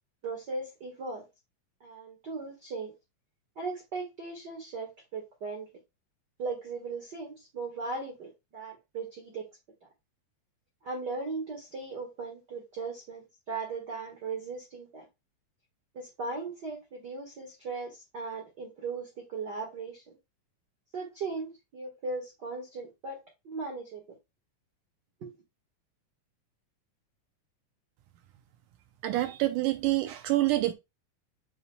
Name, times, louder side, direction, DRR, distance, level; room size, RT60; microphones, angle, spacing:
voice 1, 0.2-1.3 1.8-2.9 3.5-5.7 6.4-9.5 10.8-15.0 15.9-20.0 20.9-24.0 25.2-25.4, right 3 dB, 45° right, 1.5 m, -38 dB
voice 2, 29.0-30.7, right 16 dB, 80° right, 1.9 m, -27 dB
8.7 x 5.4 x 2.3 m
omnidirectional pair, 4.1 m